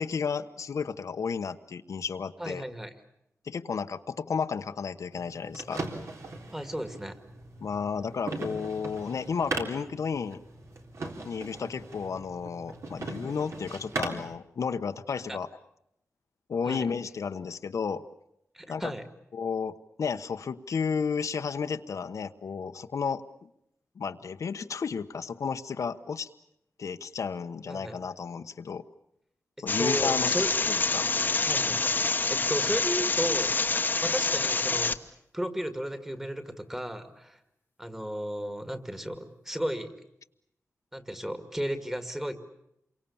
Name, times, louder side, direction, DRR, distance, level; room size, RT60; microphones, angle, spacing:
voice 1, 0.0-2.6 3.4-5.8 7.6-10.4 11.2-15.5 16.5-18.0 18.7-18.9 19.3-23.5 24.0-26.3 26.8-28.8 29.6-31.1, left 6 dB, 75° left, 8 dB, 1.0 m, -32 dB
voice 2, 2.4-2.9 6.5-7.2 15.3-15.4 16.7-16.9 18.5-19.1 27.7-28.0 29.8-30.5 31.4-33.6 34.0-35.0 35.3-37.4 37.8-39.9 40.9-42.3, equal, 10° right, 8 dB, 2.1 m, -34 dB
sound 1, 5.1-14.4, right 2 dB, 60° right, 3.7 m, -39 dB
sound 2, 29.7-34.9, left 3 dB, 35° left, 1.1 m, -27 dB
28.5 x 24.0 x 7.2 m, 0.79 s
wide cardioid pair, 155°, 5 cm